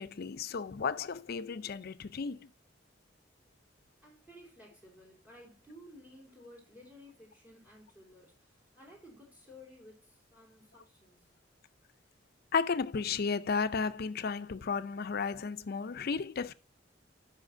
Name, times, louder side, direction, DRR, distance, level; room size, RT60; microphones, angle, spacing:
voice 1, 0.0-2.5 12.5-16.5, left 5 dB, 55° left, 0.5 m, -33 dB
voice 2, 4.0-11.2, left 1 dB, 10° right, 3.3 m, -55 dB
14.0 x 5.6 x 2.6 m
head